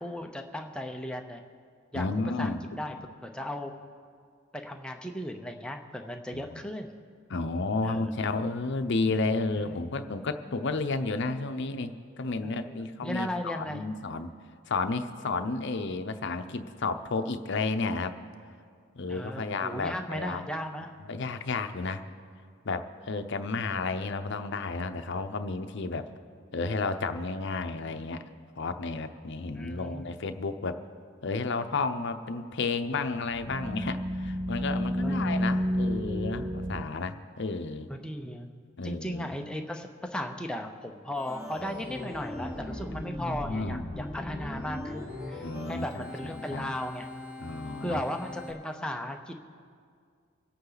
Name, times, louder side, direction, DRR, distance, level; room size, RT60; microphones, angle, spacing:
voice 1, 0.0-1.4 1.9-2.1 2.4-3.0 3.2-3.7 4.5-6.9 7.8-8.0 9.6-9.8 12.4-13.9 19.1-20.9 29.5-30.1 35.0-35.5 37.9-38.5 38.8-47.1 47.8-49.4, left 1 dB, 5° left, 3 dB, 0.7 m, -36 dB
voice 2, 1.9-2.8 6.3-6.6 7.3-14.3 14.7-18.1 18.9-20.4 21.1-22.0 22.6-26.1 26.5-28.2 28.6-30.8 31.2-37.9 38.8-39.3 43.3-43.8 45.4-46.7 47.4-48.0, left 3 dB, 60° left, 8 dB, 0.7 m, -32 dB
sound 1, 33.3-36.8, equal, 35° right, 0.5 m, -30 dB
Organ, 41.1-48.5, left 1 dB, 15° right, 3.0 m, -39 dB
25.5 x 8.5 x 4.0 m, 2.1 s
head